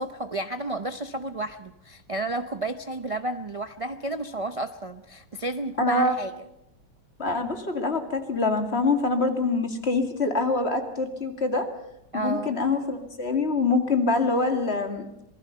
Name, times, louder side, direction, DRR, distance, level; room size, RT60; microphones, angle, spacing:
voice 1, 0.0-6.3 12.1-12.6, right 2 dB, 55° right, 8 dB, 0.3 m, -32 dB
voice 2, 5.8-6.2 7.2-11.7 12.1-15.1, left 3 dB, 35° left, 5 dB, 2.5 m, -25 dB
26.5 x 19.5 x 5.5 m, 0.87 s
omnidirectional pair, 1.8 m